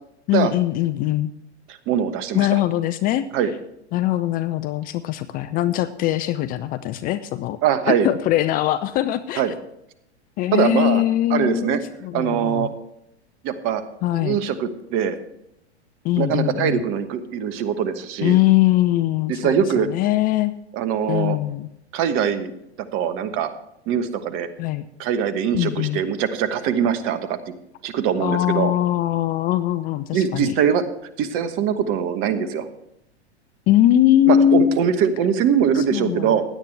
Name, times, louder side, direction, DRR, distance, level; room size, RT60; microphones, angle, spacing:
voice 1, 0.3-1.3 2.3-3.2 3.9-7.6 7.9-9.4 10.4-12.7 14.0-14.4 16.0-16.8 18.2-20.5 21.1-21.7 24.6-24.8 25.5-26.0 28.2-30.5 33.7-34.8 35.7-36.4, left 12 dB, 25° left, 13 dB, 0.5 m, -21 dB
voice 2, 1.7-2.6 3.3-3.5 7.6-8.1 9.4-9.5 10.5-11.0 11.3-11.8 12.1-12.7 13.4-13.8 14.1-15.2 16.2-18.4 19.3-19.9 20.7-21.4 21.9-22.5 22.9-23.5 23.9-24.5 25.0-27.4 27.8-28.7 30.1-30.8 31.2-32.7 34.3-36.4, right 8 dB, 40° right, 11 dB, 1.2 m, -22 dB
16.5 x 10.5 x 3.3 m, 0.80 s
figure-of-eight pair, 95°, 34 cm